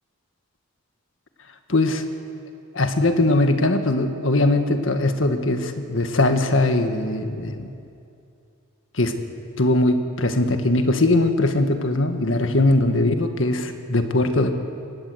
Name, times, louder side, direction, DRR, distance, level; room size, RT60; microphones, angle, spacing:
voice 1, 1.7-2.1 2.7-7.7 9.0-9.1 9.6-14.5, left 2 dB, 75° left, 7 dB, 1.6 m, -20 dB
22.5 x 18.0 x 7.9 m, 2.5 s
head